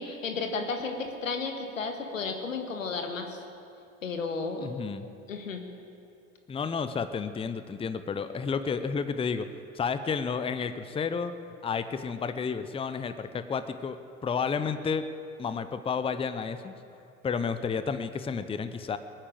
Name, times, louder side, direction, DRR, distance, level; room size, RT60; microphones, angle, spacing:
voice 1, 0.0-3.4 4.0-4.7 5.3-5.7, left 4 dB, 90° left, 5 dB, 1.8 m, -33 dB
voice 2, 4.6-5.1 6.5-9.5 9.7-11.3 11.6-14.0 14.2-15.0 15.4-16.7 17.2-19.0, left 6 dB, 15° left, 11 dB, 0.7 m, -31 dB
21.0 x 9.1 x 7.7 m, 2.7 s
hypercardioid pair, 85°, 38 cm